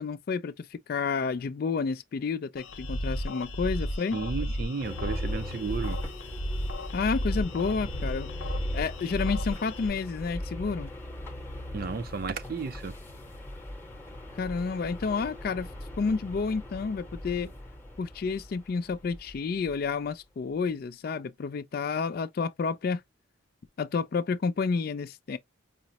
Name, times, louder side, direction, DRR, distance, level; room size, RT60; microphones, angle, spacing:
voice 1, 0.0-4.2 6.9-8.3 8.7-10.9 14.4-15.7 16.0-17.5 18.0-23.0 23.8-25.4, left 5 dB, 50° left, 0.3 m, -30 dB
sound 1, 2.6-9.9, equal, 90° left, 0.9 m, -33 dB
voice 2, 4.1-6.0 11.7-12.9, right 4 dB, 45° right, 0.4 m, -33 dB
sound 2, 4.8-20.0, left 1 dB, 10° left, 0.8 m, -41 dB
4.9 x 2.0 x 2.7 m
head